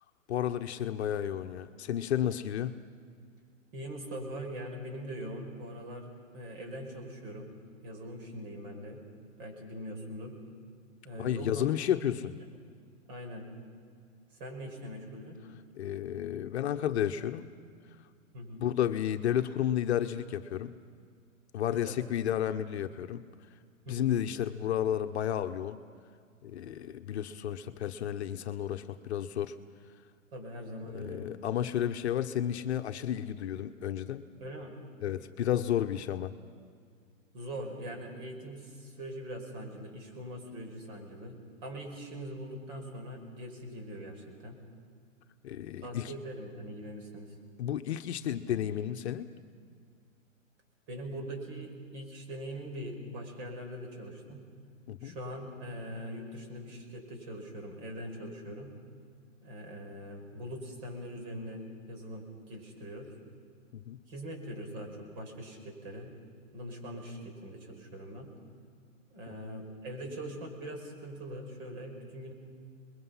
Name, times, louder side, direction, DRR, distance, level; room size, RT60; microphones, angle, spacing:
voice 1, 0.3-2.8 11.2-12.3 15.8-17.4 18.6-20.7 21.5-23.2 23.9-25.8 26.4-29.5 30.9-34.2 35.0-36.3 45.4-46.1 47.6-49.3 54.9-55.1 63.7-64.0 69.3-69.4, left 10 dB, 55° left, 8 dB, 1.0 m, -32 dB
voice 2, 3.7-7.5 7.8-9.0 9.4-10.3 11.0-11.7 13.0-13.5 14.4-15.4 18.3-18.6 21.7-22.0 23.9-24.1 30.3-31.3 34.4-34.8 37.3-44.6 45.8-47.3 50.9-54.4 55.0-58.7 59.4-63.1 64.1-66.1 66.5-68.3 69.1-72.3, equal, 40° right, 3 dB, 5.4 m, -42 dB
27.5 x 22.0 x 5.7 m, 2.1 s
hypercardioid pair, 140°, 40 cm